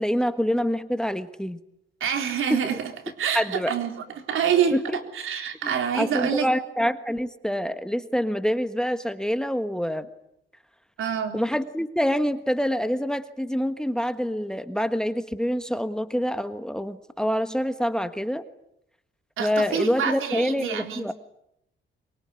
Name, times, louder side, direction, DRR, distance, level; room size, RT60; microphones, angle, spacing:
voice 1, 0.0-1.6 2.5-2.6 3.3-3.7 4.7-5.0 5.6-10.1 11.3-18.4 19.4-21.1, equal, 5° left, 10 dB, 1.4 m, -26 dB
voice 2, 2.0-2.9 3.2-6.5 11.0-11.4 19.4-21.1, right 8 dB, 85° right, 6 dB, 3.8 m, -27 dB
23.5 x 23.5 x 9.8 m, 0.79 s
cardioid pair, 110°, 20 cm